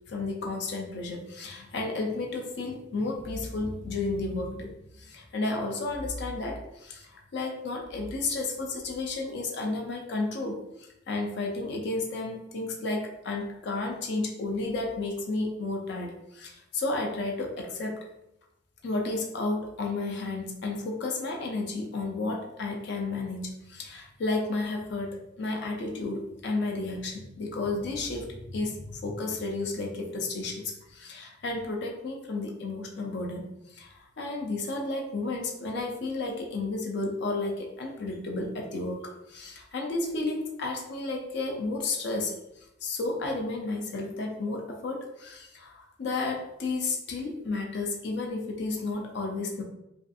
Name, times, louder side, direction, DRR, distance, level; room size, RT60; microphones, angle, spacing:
voice 1, 0.1-18.0 18.8-49.6, left 3 dB, 60° left, 1 dB, 0.4 m, -32 dB
2.4 x 2.4 x 2.5 m, 0.87 s
head